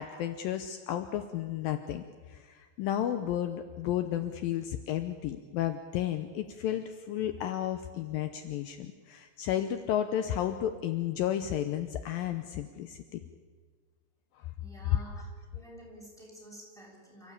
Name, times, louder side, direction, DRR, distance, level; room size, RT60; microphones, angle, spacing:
voice 1, 0.0-13.2 14.4-14.5, left 11 dB, 80° left, 8 dB, 2.1 m, -33 dB
voice 2, 14.6-15.3 15.5-17.3, equal, ahead, -2 dB, 6.4 m, -50 dB
28.5 x 15.0 x 8.5 m, 1.5 s
omnidirectional pair, 5.2 m